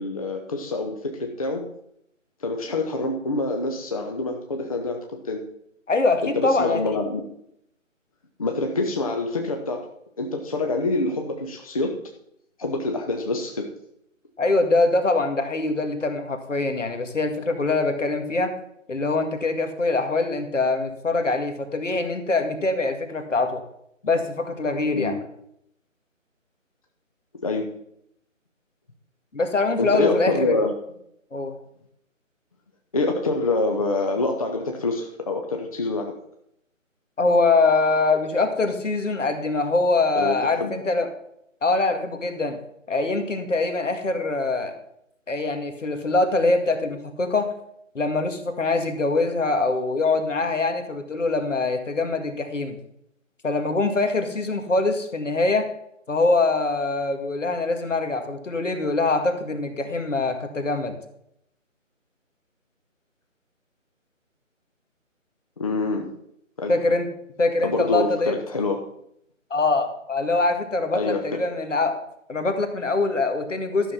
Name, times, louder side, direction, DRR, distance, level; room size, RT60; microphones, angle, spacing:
voice 1, 0.0-1.7 2.4-5.5 6.2-7.2 8.4-9.9 10.2-12.0 12.6-13.7 24.9-25.2 27.4-27.7 29.8-30.7 32.9-36.1 40.1-40.7 65.6-66.1 66.6-66.8 67.6-68.8 70.9-71.4, left 2 dB, 25° left, 3 dB, 0.9 m, -26 dB
voice 2, 5.9-6.8 14.4-18.5 18.9-23.6 24.0-25.2 29.3-30.6 31.3-31.5 37.2-41.1 41.6-42.6 42.9-44.7 45.3-47.5 47.9-52.8 53.4-55.6 56.1-60.9 66.7-67.1 67.4-68.4 69.5-72.0 72.3-73.9, left 3 dB, 65° left, 7 dB, 2.1 m, -23 dB
13.0 x 6.5 x 5.6 m, 0.74 s
figure-of-eight pair, 160°, 39 cm